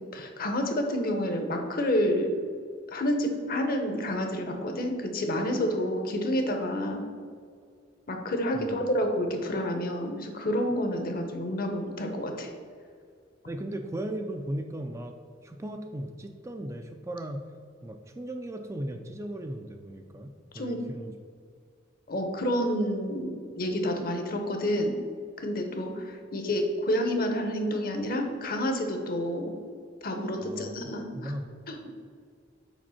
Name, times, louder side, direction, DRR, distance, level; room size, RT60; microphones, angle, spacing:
voice 1, 0.1-2.3 2.9-7.0 8.1-12.5 20.5-20.8 22.1-24.9 25.4-29.5 30.0-31.3 31.7-31.9, equal, 50° left, 4 dB, 0.8 m, -29 dB
voice 2, 8.5-8.8 13.5-15.2 15.4-17.5 17.8-21.2 30.4-31.5, right 1 dB, 15° right, 5 dB, 0.3 m, -37 dB
5.1 x 4.4 x 5.7 m, 2.1 s
head